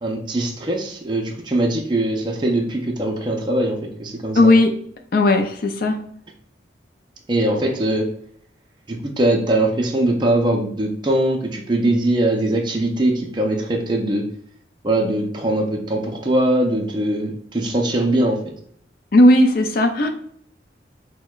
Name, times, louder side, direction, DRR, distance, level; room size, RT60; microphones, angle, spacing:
voice 1, 0.0-4.5 7.3-8.1 8.9-14.3 14.8-18.4, right 1 dB, 25° right, 1 dB, 0.4 m, -21 dB
voice 2, 4.4-4.7 5.1-6.0 19.1-20.1, left 1 dB, 50° left, 4 dB, 0.4 m, -15 dB
6.1 x 2.1 x 2.3 m, 0.63 s
head